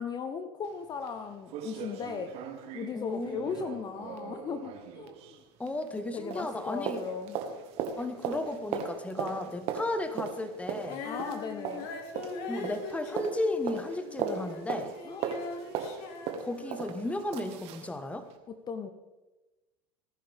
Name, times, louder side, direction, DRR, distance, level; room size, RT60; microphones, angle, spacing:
voice 1, 0.0-2.3 2.7-5.4 6.1-7.4 11.0-11.9 15.1-15.3 18.5-18.9, left 5 dB, 35° left, 9 dB, 1.0 m, -37 dB
sound 1, 0.6-0.7 1.1-1.2 1.5-6.1 6.3-17.9 18.3-18.4, right 7 dB, 55° right, 1.8 m, -38 dB
voice 2, 2.9-3.4 5.6-7.0 8.0-11.0 12.5-14.9 16.4-18.3, left 2 dB, 10° left, 9 dB, 1.3 m, -34 dB
Female singing, 10.8-14.7 14.9-17.0, left 4 dB, 60° left, 2.2 m, -41 dB
19.5 x 11.0 x 3.6 m, 1.1 s
hypercardioid pair, 90°, 13 cm